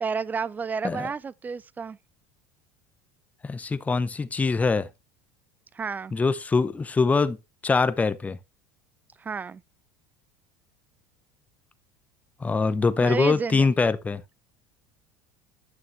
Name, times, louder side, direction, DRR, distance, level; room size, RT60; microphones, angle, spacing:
voice 1, 0.0-2.0 5.7-6.1 9.2-9.6 13.0-13.6, right 5 dB, 20° right, 0.3 m, -30 dB
voice 2, 3.4-4.9 6.1-7.4 7.6-8.4 12.4-14.2, left 4 dB, 15° left, 0.7 m, -23 dB
9.3 x 6.2 x 3.2 m
supercardioid pair, 115°, 9 cm